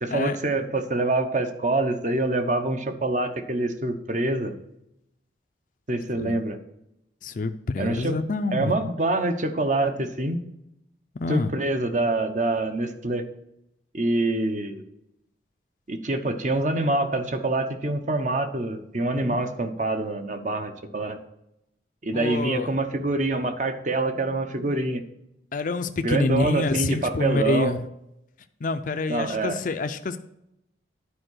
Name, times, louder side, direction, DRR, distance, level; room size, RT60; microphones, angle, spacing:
voice 1, 0.0-4.5 5.9-6.6 7.8-8.2 8.5-10.4 11.3-13.2 13.9-14.8 15.9-21.2 22.0-25.0 26.0-27.8 29.1-29.6, right 2 dB, 40° right, 7 dB, 0.9 m, -25 dB
voice 2, 7.2-8.8 11.1-11.5 19.2-19.4 22.1-22.7 25.5-27.9 28.6-30.2, left 3 dB, 45° left, 8 dB, 0.4 m, -27 dB
10.0 x 4.7 x 6.3 m, 0.82 s
head